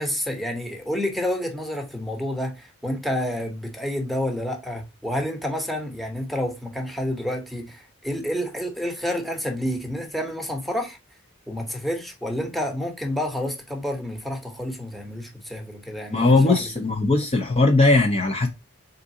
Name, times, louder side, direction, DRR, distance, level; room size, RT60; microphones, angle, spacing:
voice 1, 0.0-11.0 11.5-16.7, left 1 dB, ahead, 0.8 m, -29 dB
voice 2, 16.1-18.5, left 3 dB, 30° left, 0.5 m, -19 dB
3.9 x 3.6 x 2.6 m
head